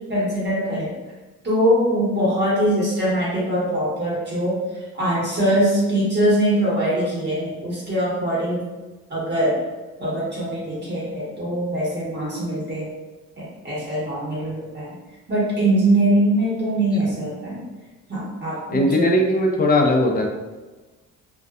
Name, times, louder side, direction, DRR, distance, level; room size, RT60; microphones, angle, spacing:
voice 1, 0.1-0.9 1.4-4.6 4.9-8.6 9.1-9.6 10.0-12.9 13.4-14.9 15.3-17.6 18.1-19.1, right 1 dB, 35° right, -7 dB, 1.3 m, -22 dB
voice 2, 18.7-20.3, left 1 dB, 30° left, 2 dB, 0.5 m, -18 dB
2.6 x 2.2 x 2.3 m, 1.2 s
cardioid pair, 90°, 30 cm